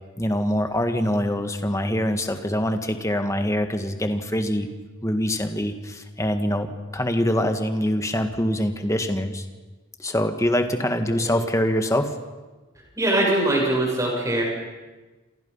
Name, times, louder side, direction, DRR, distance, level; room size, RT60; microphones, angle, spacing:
voice 1, 0.2-4.7 5.0-9.5 10.0-12.1, left 1 dB, 15° left, 6 dB, 1.7 m, -24 dB
voice 2, 13.0-14.4, right 1 dB, 15° right, -1 dB, 7.6 m, -22 dB
29.0 x 27.5 x 5.6 m, 1.2 s
head